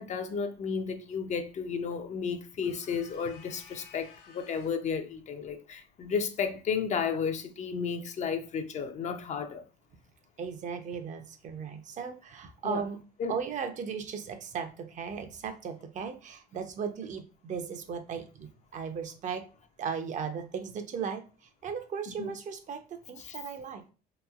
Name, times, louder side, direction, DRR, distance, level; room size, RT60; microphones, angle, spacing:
voice 1, 0.0-9.6 12.6-12.9 13.2-13.4 22.2-22.3 23.2-23.4, left 6 dB, 45° left, 0.5 m, -33 dB
sound 1, 2.6-4.9, left 7 dB, 80° left, 0.7 m, -54 dB
voice 2, 10.4-13.0 13.3-19.4 19.8-21.2 21.6-23.9, right 6 dB, 45° right, 0.5 m, -36 dB
3.5 x 2.9 x 2.3 m
cardioid pair, 110°, 17 cm